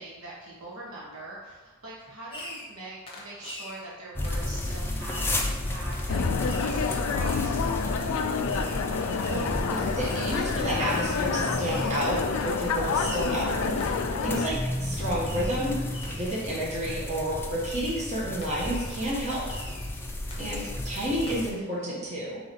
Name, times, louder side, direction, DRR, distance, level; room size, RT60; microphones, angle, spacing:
voice 1, 0.0-7.6 16.8-16.9, right 2 dB, 85° right, -5 dB, 1.0 m, -43 dB
Fireworks, 2.3-2.8 3.1-3.8 4.2-4.5 5.1-5.5 5.9-6.1 6.5-6.8 7.3-7.4 8.5-8.8 9.2-9.6 10.0-10.4 10.9-11.2 11.6-12.0 12.4-12.6 13.0-13.4 13.8-14.1 15.2-15.6 15.9-16.3 16.8-16.9 17.6-18.0 18.4-18.9 19.3-19.9 20.3-20.8 21.1-21.3, left 1 dB, 25° left, 0.8 m, -43 dB
sound 1, 4.2-21.5, left 1 dB, 10° left, 0.4 m, -33 dB
sound 2, 6.1-14.5, left 5 dB, 80° left, 0.3 m, -29 dB
voice 2, 9.3-15.8 16.1-19.4 20.4-22.4, right 1 dB, 35° right, -7 dB, 1.0 m, -31 dB
3.9 x 3.0 x 4.1 m, 1.2 s
head